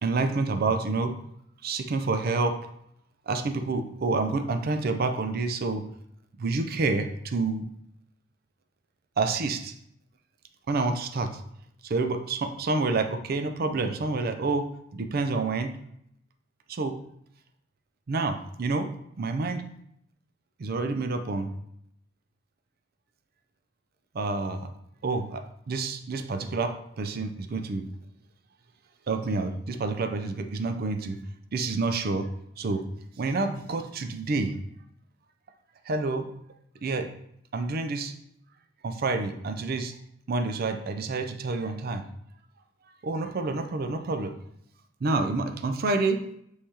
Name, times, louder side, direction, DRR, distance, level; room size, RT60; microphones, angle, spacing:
voice 1, 0.0-1.1 1.6-2.6 3.3-5.8 6.4-7.7 9.2-9.7 10.7-11.4 11.8-14.7 14.9-15.7 16.7-16.9 18.1-18.9 19.2-19.6 20.6-21.5 24.1-24.7 25.0-27.9 29.1-31.2 31.5-32.3 32.6-32.8 33.2-34.6 35.9-36.3 36.8-37.1 37.5-38.1 38.8-39.9 40.3-42.0 43.0-44.3 45.0-46.2, right 3 dB, 50° right, 7 dB, 0.5 m, -28 dB
5.5 x 3.2 x 2.8 m, 0.72 s
head